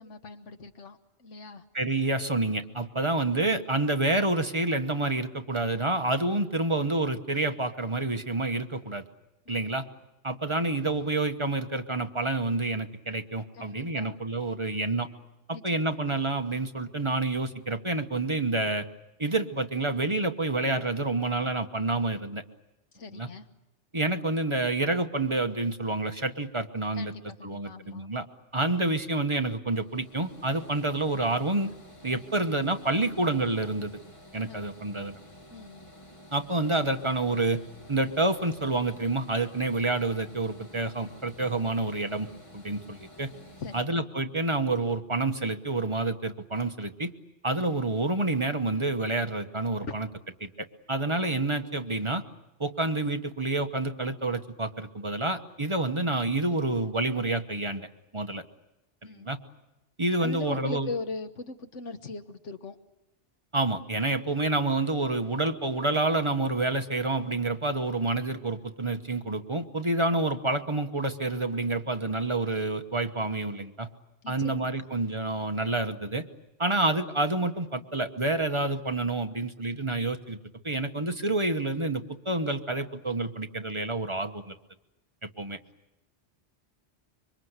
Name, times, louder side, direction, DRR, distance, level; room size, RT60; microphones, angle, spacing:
voice 1, 0.0-1.6 9.5-9.7 13.5-14.2 15.5-16.0 22.9-23.5 26.9-28.1 34.5-34.6 35.5-35.8 43.6-44.0 49.8-50.0 59.0-59.3 60.2-62.8 74.2-74.9 76.7-76.8, left 3 dB, 90° left, 8 dB, 1.6 m, -40 dB
voice 2, 1.7-9.0 9.5-9.9 10.2-15.1 15.6-18.9 19.2-22.4 23.1-23.3 23.9-27.1 27.4-28.2 28.5-31.7 32.0-34.0 34.3-35.2 36.3-37.6 37.9-42.3 42.5-43.3 43.7-47.1 47.4-50.1 50.4-52.2 52.6-57.9 58.1-58.4 59.1-59.4 60.0-60.9 63.5-73.9 74.3-76.2 76.6-80.4 80.6-84.5 85.4-85.6, right 2 dB, 25° right, 6 dB, 1.1 m, -28 dB
sound 1, 29.8-43.9, equal, 25° left, 2.0 m, -51 dB
26.0 x 24.0 x 8.1 m, 0.94 s
omnidirectional pair, 1.2 m